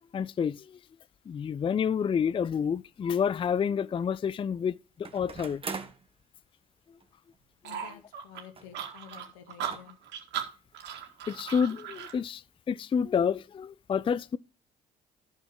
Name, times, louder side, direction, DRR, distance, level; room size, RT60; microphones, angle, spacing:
voice 1, 0.1-0.8 1.3-5.6 11.3-14.4, left 7 dB, 30° left, 0.4 m, -29 dB
sound 1, 2.7-2.8 5.0-6.1 7.0-7.1 7.3-7.4 8.5-8.9 9.2-9.3 9.7-9.8, right 4 dB, 30° right, 1.5 m, -40 dB
voice 2, 7.6-10.0, left 9 dB, 85° left, 1.2 m, -50 dB
sound 2, 7.6-12.2, right 9 dB, 70° right, 1.8 m, -37 dB
11.5 x 6.5 x 3.7 m
hypercardioid pair, 55°, 19 cm